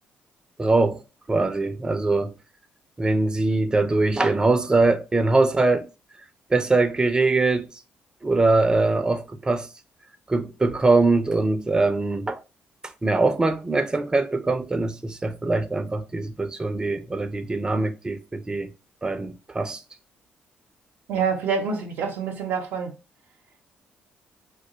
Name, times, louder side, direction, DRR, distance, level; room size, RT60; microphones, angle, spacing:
voice 1, 0.6-1.0 1.3-2.3 3.0-5.9 6.5-7.7 8.2-9.7 10.3-12.4 13.0-18.7 19.0-19.8, right 3 dB, 20° right, 0.5 m, -22 dB
voice 2, 21.1-22.9, right 6 dB, 85° right, 0.6 m, -26 dB
2.3 x 2.2 x 3.8 m
cardioid pair, 80°, 4 cm